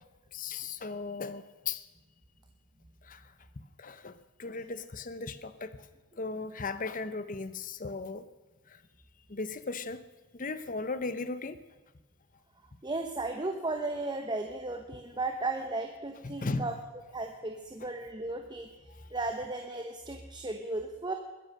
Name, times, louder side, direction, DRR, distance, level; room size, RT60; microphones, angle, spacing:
voice 1, 0.3-1.8 3.1-3.2 3.8-4.1 4.4-5.7 6.2-8.2 9.3-10.0 10.3-11.6 16.2-16.7, left 4 dB, 35° left, 13 dB, 0.8 m, -36 dB
voice 2, 12.8-16.8 17.1-18.7 19.1-21.1, right 2 dB, 20° right, 5 dB, 1.0 m, -35 dB
21.5 x 10.5 x 6.5 m, 1.2 s
head